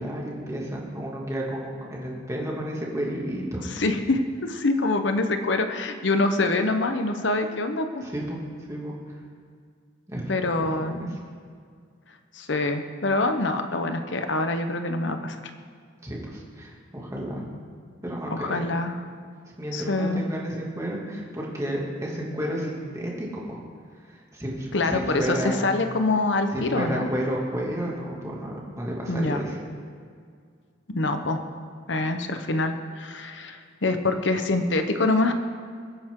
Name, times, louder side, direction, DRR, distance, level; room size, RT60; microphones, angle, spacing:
voice 1, 0.0-3.6 8.0-8.4 8.7-8.9 10.1-10.3 10.6-11.2 16.0-17.5 18.0-18.7 19.6-23.6 24.1-25.7 26.5-29.6, right 1 dB, 15° right, -3 dB, 2.4 m, -31 dB
voice 2, 3.6-8.0 10.3-11.1 12.3-15.4 18.3-19.0 19.7-20.2 24.7-27.1 29.1-29.4 30.9-31.4 31.9-35.3, left 2 dB, 65° left, 7 dB, 0.9 m, -25 dB
22.0 x 9.2 x 3.8 m, 2.1 s
head